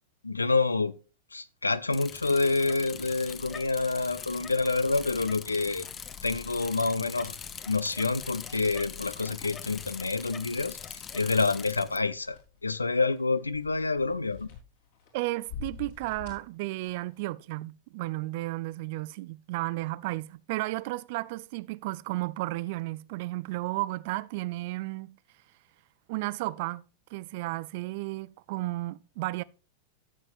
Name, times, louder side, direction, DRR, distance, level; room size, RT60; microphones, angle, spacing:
voice 1, 0.2-0.9 1.3-5.9 6.2-7.4 7.7-14.5, left 3 dB, 80° left, 0.5 m, -28 dB
Bicycle, 1.9-12.0, left 7 dB, 25° left, 0.8 m, -42 dB
sound 1, 4.3-17.2, left 6 dB, 55° left, 3.5 m, -50 dB
voice 2, 15.1-25.2 26.1-26.8 27.1-29.4, right 19 dB, 50° right, 0.4 m, -33 dB
14.0 x 7.4 x 2.5 m
figure-of-eight pair, 90°, 0 cm